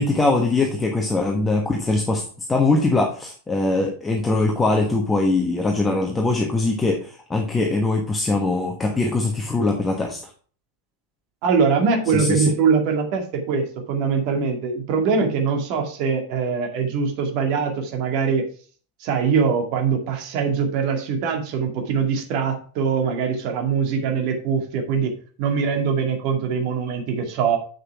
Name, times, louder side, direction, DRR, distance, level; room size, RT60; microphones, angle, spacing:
voice 1, 0.0-2.2 2.5-10.2 12.1-12.5, left 2 dB, 10° left, 1 dB, 1.3 m, -21 dB
voice 2, 11.4-18.4 19.0-25.1 25.4-27.6, right 6 dB, 45° right, 3 dB, 2.1 m, -22 dB
7.9 x 6.5 x 4.7 m, 0.42 s
figure-of-eight pair, 90°, 0 cm